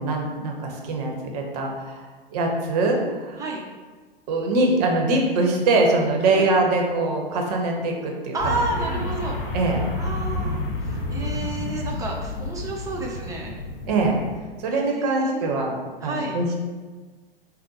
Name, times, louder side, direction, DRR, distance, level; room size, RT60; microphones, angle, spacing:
voice 1, 0.0-3.4 4.3-8.5 8.9-9.0 9.5-9.8 13.9-14.2 14.6-15.7 16.0-16.5, right 2 dB, 40° right, 1 dB, 0.8 m, -23 dB
voice 2, 8.3-9.4 10.0-13.5 14.7-15.6 16.0-16.4, right 2 dB, 10° right, -2 dB, 0.7 m, -31 dB
sound 1, 8.4-14.4, left 2 dB, 65° left, 0.7 m, -30 dB
5.0 x 2.1 x 4.2 m, 1.4 s
figure-of-eight pair, 110°, 30 cm